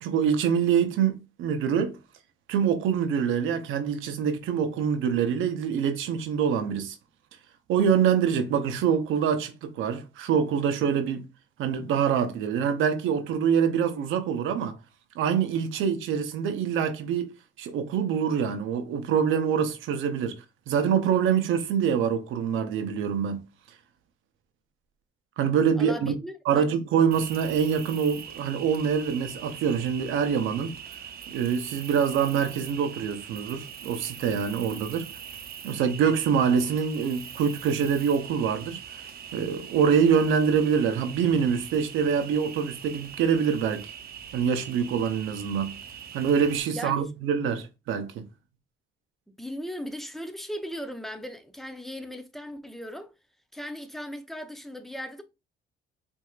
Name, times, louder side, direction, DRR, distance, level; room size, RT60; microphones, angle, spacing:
voice 1, 0.0-2.0 2.5-7.0 7.7-11.3 11.6-14.8 15.2-23.5 25.4-26.1 26.5-30.7 31.3-35.1 35.6-38.8 39.3-43.9 44.3-45.8 46.1-48.3, right 7 dB, 90° right, 0.7 m, -25 dB
voice 2, 25.8-26.7 46.7-47.0 49.4-53.1 53.5-55.2, equal, ahead, 0.6 m, -37 dB
Cricket, 27.1-46.6, right 8 dB, 50° right, 0.6 m, -42 dB
4.6 x 2.7 x 2.4 m
cardioid pair, 90°, 20 cm